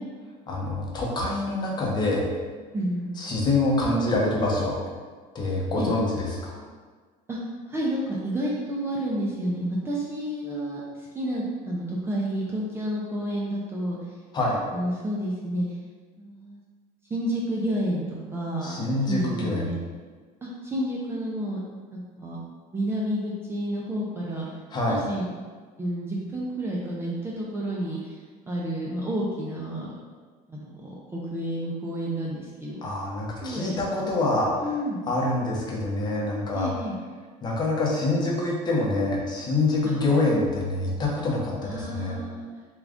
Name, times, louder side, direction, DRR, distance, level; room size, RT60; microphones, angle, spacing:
voice 1, 0.5-2.3 3.2-4.7 5.3-6.6 14.3-14.6 18.6-19.6 24.7-25.0 32.8-34.8 35.1-36.7 37.4-42.2, left 2 dB, 25° left, -3 dB, 0.8 m, -26 dB
voice 2, 2.7-3.2 5.8-5.9 7.3-7.4 7.7-14.0 14.7-15.8 16.2-16.6 17.1-19.8 20.4-21.6 21.9-22.4 22.7-24.5 24.9-25.2 25.8-28.2 28.5-29.9 30.5-32.8 33.4-33.8 34.6-35.1 36.5-36.9 41.6-42.5, right 1 dB, 15° right, -4 dB, 0.4 m, -30 dB
3.7 x 2.4 x 3.4 m, 1.5 s
cardioid pair, 145°, 17 cm